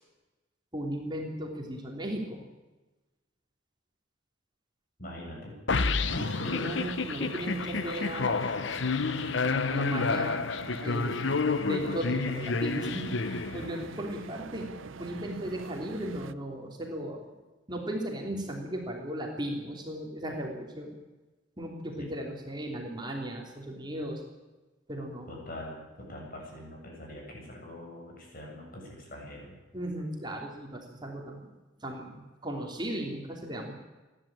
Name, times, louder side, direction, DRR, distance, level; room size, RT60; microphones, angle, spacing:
voice 1, 0.7-2.4 6.5-8.8 9.7-10.4 10.8-11.3 11.6-13.1 13.5-14.7 15.0-17.3 17.7-21.0 21.6-24.2 24.9-25.3 29.7-31.5 31.8-33.7, right 1 dB, 25° right, 0 dB, 3.0 m, -36 dB
voice 2, 5.0-5.5 22.0-22.1 25.3-29.5, left 1 dB, 50° left, -1 dB, 7.9 m, -43 dB
sound 1, 5.7-14.0, left 4 dB, 65° left, 0.8 m, -29 dB
sound 2, 5.8-16.3, right 4 dB, 85° right, 0.7 m, -44 dB
29.5 x 11.5 x 8.8 m, 1.1 s
head